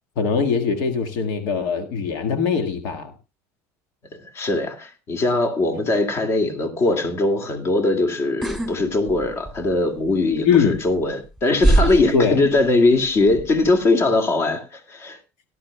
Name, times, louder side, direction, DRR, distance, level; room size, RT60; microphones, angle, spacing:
voice 1, 0.2-3.1 10.4-10.8 12.1-12.4, left 6 dB, 65° left, 1.6 m, -21 dB
voice 2, 4.1-15.2, left 2 dB, 35° left, 2.2 m, -21 dB
sound 1, 8.4-8.7 9.1-9.7 10.7-10.8 11.6-13.0 13.3-13.7, right 2 dB, 5° left, 2.6 m, -20 dB
18.0 x 11.5 x 2.2 m
cardioid pair, 145°, 8 cm